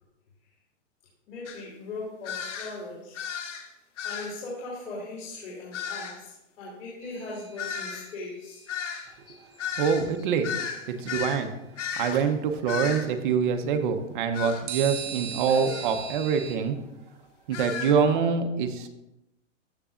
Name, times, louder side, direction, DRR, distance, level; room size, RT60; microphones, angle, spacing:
voice 1, 1.3-3.2 4.0-8.7 12.1-12.3 15.5-15.7, left 2 dB, 85° left, -6 dB, 3.4 m, -39 dB
sound 1, 1.5-1.6 2.3-2.8 3.2-3.7 4.0-4.4 5.7-6.2 7.6-11.4 11.8-12.2 12.7-13.1 14.3-14.6 15.7-15.9 17.5-18.0, left 7 dB, 70° left, 1.4 m, -34 dB
sound 2, 7.0-8.3 14.7-16.6, right 9 dB, 20° right, 0.6 m, -38 dB
voice 2, 9.8-10.5 10.9-11.5 12.0-16.8 17.5-18.9, right 6 dB, 40° right, 6 dB, 0.9 m, -25 dB
14.5 x 6.6 x 2.5 m, 0.91 s
hypercardioid pair, 165°, 38 cm